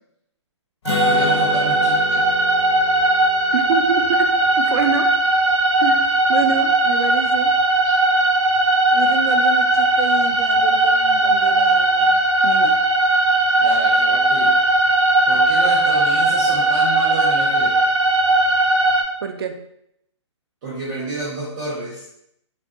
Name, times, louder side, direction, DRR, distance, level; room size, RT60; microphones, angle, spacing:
Acoustic guitar, 0.8-4.5, left 3 dB, 55° left, 0.6 m, -29 dB
sound 1, 0.9-19.0, right 2 dB, 75° right, 0.9 m, -18 dB
voice 1, 1.0-2.2 13.6-14.6 15.2-17.8 20.6-22.1, right 2 dB, 35° right, -7 dB, 0.8 m, -30 dB
voice 2, 3.5-5.2 5.8-7.5 8.9-12.2 12.4-12.8 19.2-19.6, right 6 dB, 55° right, 6 dB, 0.4 m, -27 dB
3.3 x 2.3 x 2.5 m, 0.76 s
figure-of-eight pair, 135°, 16 cm